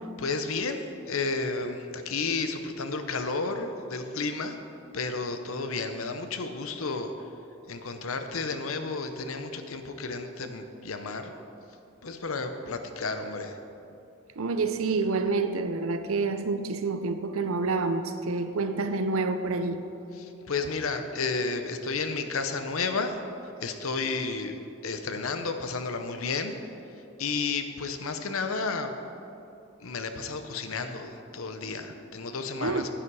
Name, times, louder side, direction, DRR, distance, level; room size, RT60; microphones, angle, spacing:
voice 1, 0.2-4.6 4.9-7.1 7.7-11.3 12.0-13.6 20.1-23.2 23.6-26.5 27.2-29.0 29.8-32.9, left 4 dB, 85° left, 7 dB, 0.8 m, -32 dB
voice 2, 14.4-19.8 32.6-32.9, right 3 dB, 90° right, 9 dB, 0.7 m, -28 dB
10.0 x 8.8 x 4.8 m, 2.8 s
head